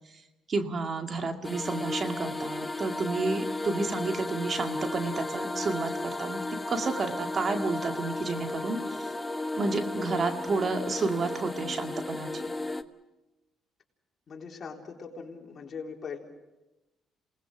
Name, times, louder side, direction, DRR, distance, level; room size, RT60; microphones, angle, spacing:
voice 1, 0.5-6.4 6.7-8.8 9.5-12.4, right 3 dB, 45° right, 5 dB, 2.1 m, -31 dB
sound 1, 1.4-12.8, left 2 dB, 15° left, 1.1 m, -34 dB
voice 2, 14.3-16.2, left 5 dB, 50° left, 1 dB, 3.7 m, -40 dB
27.5 x 19.0 x 6.2 m, 1.0 s
supercardioid pair, 70°, 0 cm